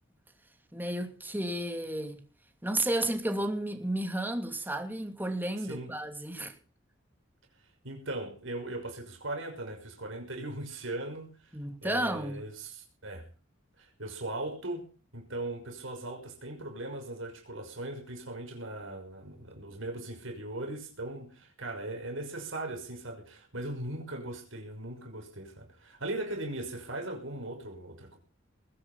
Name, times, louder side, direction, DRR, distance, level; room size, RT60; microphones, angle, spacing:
voice 1, 0.7-2.2 2.6-6.5 11.5-12.4, right 1 dB, 10° right, 2.6 m, -32 dB
voice 2, 7.8-13.3 13.8-14.8 15.1-28.2, right 2 dB, 80° right, 5.9 m, -39 dB
21.0 x 9.8 x 5.6 m
head